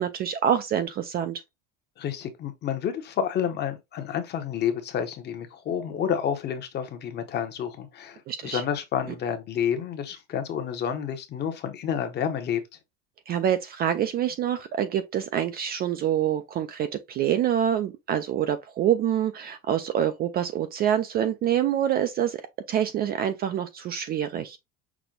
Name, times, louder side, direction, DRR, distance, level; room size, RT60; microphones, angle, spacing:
voice 1, 0.0-1.4 8.3-8.6 13.3-22.4 22.7-24.6, right 10 dB, 30° right, 0.4 m, -26 dB
voice 2, 2.0-12.6, left 8 dB, 30° left, 0.9 m, -29 dB
6.1 x 2.2 x 3.7 m
cardioid pair, 150°, 32 cm